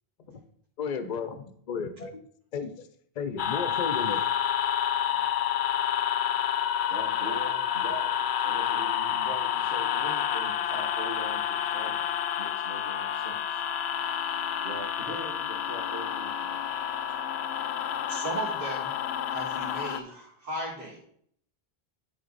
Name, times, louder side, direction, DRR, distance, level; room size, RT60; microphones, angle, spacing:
voice 1, 0.8-2.2 2.5-2.9 3.2-4.3, left 5 dB, 50° left, 10 dB, 0.7 m, -34 dB
sound 1, 3.4-20.0, left 9 dB, 90° left, 0.8 m, -29 dB
voice 2, 6.8-12.1 12.4-17.0, right 2 dB, 80° right, -4 dB, 1.8 m, -42 dB
voice 3, 18.1-18.9 19.2-21.0, right 2 dB, 60° right, -6 dB, 2.8 m, -35 dB
11.0 x 3.8 x 4.0 m, 0.64 s
omnidirectional pair, 1.0 m